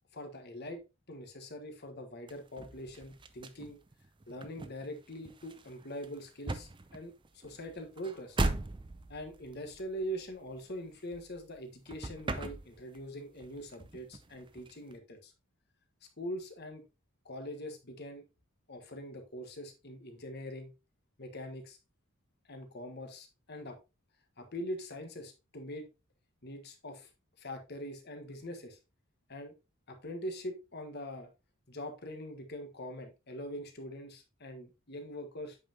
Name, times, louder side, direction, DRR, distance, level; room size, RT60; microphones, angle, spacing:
voice 1, 0.1-0.8 1.1-3.8 4.3-8.4 9.1-15.3 16.2-16.8 17.2-18.2 18.7-20.7 21.2-21.8 22.5-23.8 24.4-25.9 26.4-27.1 27.4-28.8 29.3-29.5 29.9-31.3 31.7-35.6, equal, 50° left, 5 dB, 1.5 m, -43 dB
sound 1, 2.3-11.6 11.9-13.1 13.4-14.9, right 2 dB, 25° right, 0.5 m, -39 dB
8.3 x 5.6 x 2.9 m, 0.27 s
head